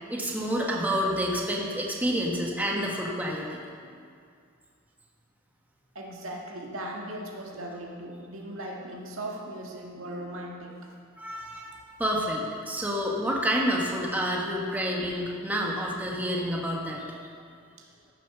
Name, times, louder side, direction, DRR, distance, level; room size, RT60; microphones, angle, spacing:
voice 1, 0.1-3.6 11.2-17.2, equal, 10° right, -2 dB, 1.4 m, -29 dB
voice 2, 6.0-10.7 14.8-14.9 17.8-17.9, right 1 dB, 75° right, -1 dB, 1.8 m, -38 dB
14.5 x 7.4 x 6.0 m, 2.2 s
head